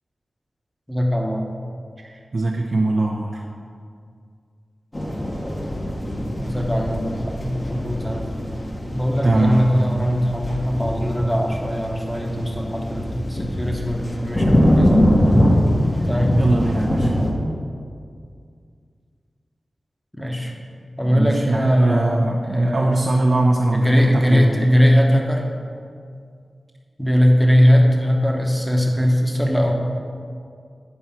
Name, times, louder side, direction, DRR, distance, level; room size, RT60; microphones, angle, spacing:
voice 1, 0.9-1.5 6.3-7.2 7.4-8.3 8.9-15.1 16.1-16.4 20.2-20.5 21.0-23.1 23.7-25.4 27.0-29.7, equal, 5° left, 1 dB, 1.2 m, -20 dB
voice 2, 2.0-3.5 9.2-10.1 16.0-16.1 16.4-17.1 21.0-24.7, right 2 dB, 55° right, -2 dB, 0.7 m, -21 dB
sound 1, 4.9-17.3, equal, 30° left, 1.4 m, -22 dB
9.6 x 4.7 x 5.8 m, 2.2 s
wide cardioid pair, 70°, 0 cm